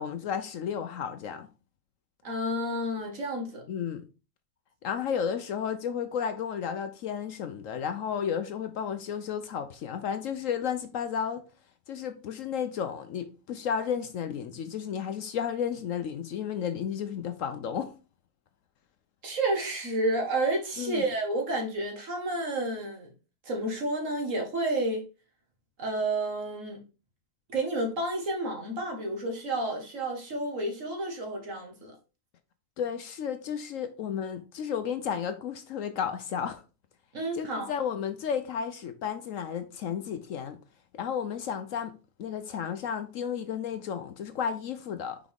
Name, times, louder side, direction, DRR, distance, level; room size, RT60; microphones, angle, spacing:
voice 1, 0.0-1.5 3.7-4.0 4.8-11.4 11.9-17.9 20.8-21.1 32.8-36.6 37.3-40.6 40.9-45.2, left 7 dB, 65° left, 0.9 m, -33 dB
voice 2, 2.2-3.6 19.2-23.1 23.4-25.0 25.8-26.8 27.5-31.9 37.1-37.7, right 1 dB, 55° right, 2.0 m, -30 dB
5.9 x 4.8 x 3.5 m
omnidirectional pair, 1.6 m